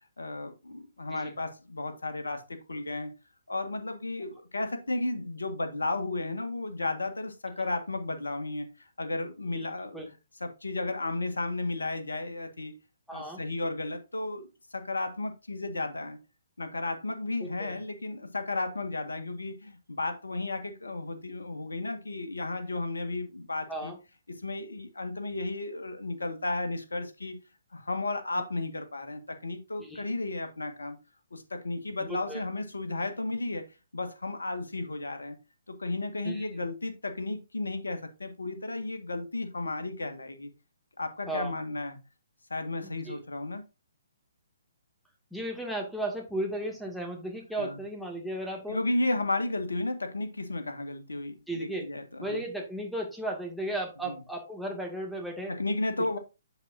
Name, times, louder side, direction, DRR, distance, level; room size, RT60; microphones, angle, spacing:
voice 1, 0.2-3.1 3.5-10.0 10.4-12.7 13.1-16.2 16.6-23.9 24.3-27.4 27.7-31.0 31.3-33.7 33.9-35.4 35.7-40.5 41.0-42.0 42.5-43.6 47.6-47.8 48.7-52.4 54.0-54.2 55.5-56.2, left 2 dB, 80° left, 7 dB, 1.7 m, -33 dB
voice 2, 13.1-13.4 17.4-17.8 23.7-24.0 29.8-30.0 32.0-32.4 36.2-36.7 41.3-41.5 42.8-43.2 45.3-48.8 51.5-51.9 52.2-55.5, right 1 dB, ahead, 0 dB, 2.2 m, -35 dB
7.9 x 7.3 x 2.7 m, 0.27 s
figure-of-eight pair, 135°, 0 cm